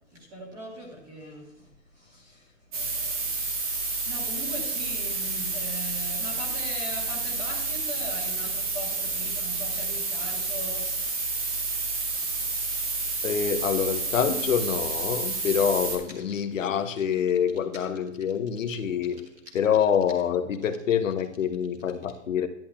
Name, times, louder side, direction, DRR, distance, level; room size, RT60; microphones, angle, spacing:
voice 1, 0.0-1.7 1.9-3.1 4.1-10.9, equal, 10° right, 1.0 m, -40 dB
sound 1, 2.7-16.0, right 3 dB, 30° right, 1.2 m, -30 dB
voice 2, 13.2-19.3 19.5-22.5, left 8 dB, 90° left, 0.9 m, -26 dB
10.5 x 10.0 x 2.3 m
hypercardioid pair, 175°, 37 cm